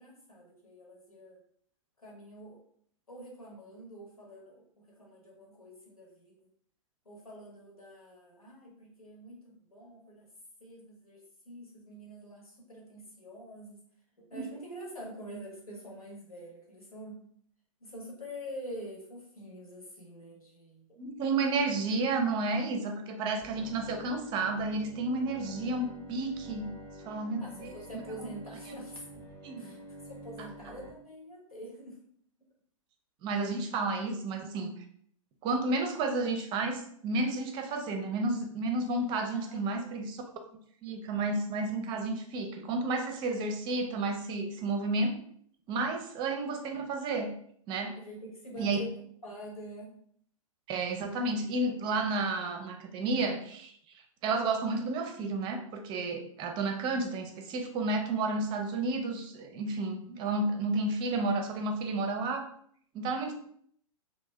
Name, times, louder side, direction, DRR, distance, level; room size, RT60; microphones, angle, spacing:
voice 1, 0.0-1.4 2.0-2.6 3.1-6.5 7.0-10.3 10.6-13.8 14.2-17.2 17.8-20.9 27.4-29.0 29.6-29.8 30.0-32.0 39.3-39.9 47.9-48.9 49.2-49.9, equal, 85° left, -2 dB, 1.3 m, -46 dB
voice 2, 21.0-26.7 27.0-27.7 29.4-29.7 33.2-34.8 35.4-40.2 40.8-45.1 45.7-47.3 47.7-48.0 48.6-48.8 50.7-53.7 54.2-62.5 62.9-63.3, right 3 dB, 25° right, 5 dB, 0.5 m, -31 dB
Bowed string instrument, 23.4-30.9, equal, 20° left, 0.9 m, -48 dB
3.0 x 2.7 x 3.3 m, 0.64 s
figure-of-eight pair, 110°, 18 cm